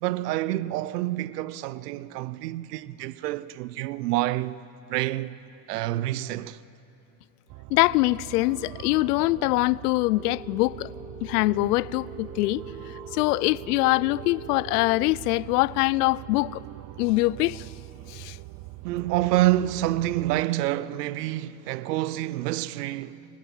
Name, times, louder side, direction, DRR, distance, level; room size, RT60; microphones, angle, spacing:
voice 1, 0.0-4.6 4.9-5.4 5.7-6.6 18.8-23.3, right 15 dB, 80° right, 0.8 m, -27 dB
sound 1, 7.5-20.5, right 19 dB, 45° right, 0.6 m, -43 dB
voice 2, 7.7-10.9 11.2-12.6 13.1-16.6 17.0-17.7 18.1-18.4, left 20 dB, 75° left, 0.6 m, -23 dB
Telephone, 10.0-15.0, right 1 dB, 50° left, 6.2 m, -43 dB
25.5 x 24.5 x 7.3 m
hypercardioid pair, 95°, 47 cm